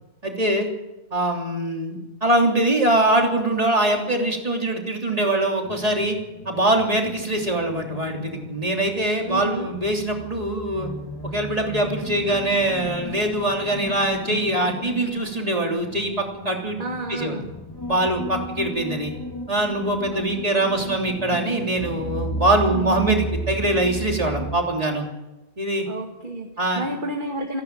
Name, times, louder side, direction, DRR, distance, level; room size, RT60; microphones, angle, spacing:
voice 1, 0.2-0.7 1.1-6.2 6.4-10.9 11.3-16.8 17.1-17.4 17.9-19.1 19.5-25.1 25.6-25.9 26.6-26.8, right 1 dB, 35° right, 1 dB, 3.3 m, -23 dB
sound 1, 5.6-24.6, equal, 25° left, 1.6 m, -34 dB
voice 2, 9.3-9.7 16.8-17.5 20.1-20.2 20.6-21.0 22.7-23.2 25.9-26.5 26.8-27.6, right 2 dB, 50° right, 2 dB, 2.0 m, -30 dB
28.0 x 10.5 x 8.9 m, 1.0 s
omnidirectional pair, 1.0 m